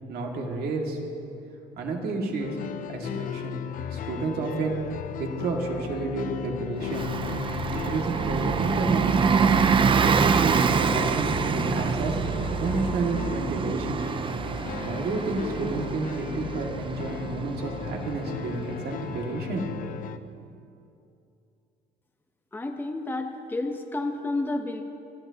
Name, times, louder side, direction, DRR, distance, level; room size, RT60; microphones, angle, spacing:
voice 1, 0.1-1.0 1.8-2.6 2.9-3.6 3.9-4.8 5.2-7.1 7.7-9.2 10.0-12.2 12.6-14.1 14.7-19.7, right 3 dB, 65° right, 0 dB, 2.1 m, -30 dB
sound 1, 2.4-20.2, left 9 dB, 55° left, 0.6 m, -37 dB
Bus, 6.8-19.1, right 6 dB, 30° right, 0.5 m, -26 dB
voice 2, 22.5-24.8, left 2 dB, 10° left, 3 dB, 0.9 m, -30 dB
23.5 x 12.5 x 2.9 m, 2.7 s
cardioid pair, 110°, 17 cm